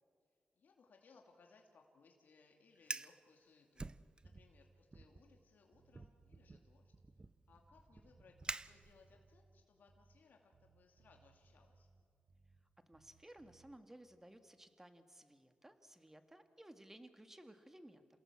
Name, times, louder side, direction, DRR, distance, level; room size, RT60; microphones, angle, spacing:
voice 1, 0.6-3.9 4.2-6.9 7.5-11.9, left 4 dB, 70° left, 2 dB, 2.5 m, -67 dB
Fire, 2.8-3.2 3.8-4.5 4.9-5.2 5.9-9.3, right 3 dB, 30° right, 0.6 m, -48 dB
Bass guitar, 4.2-5.5 5.7-10.3 10.5-12.7 12.9-13.8, right 4 dB, 55° right, 2.3 m, -69 dB
voice 2, 12.9-18.1, right 1 dB, 15° right, 8 dB, 1.8 m, -58 dB
28.0 x 17.5 x 7.6 m, 2.2 s
cardioid pair, 75°, 3 cm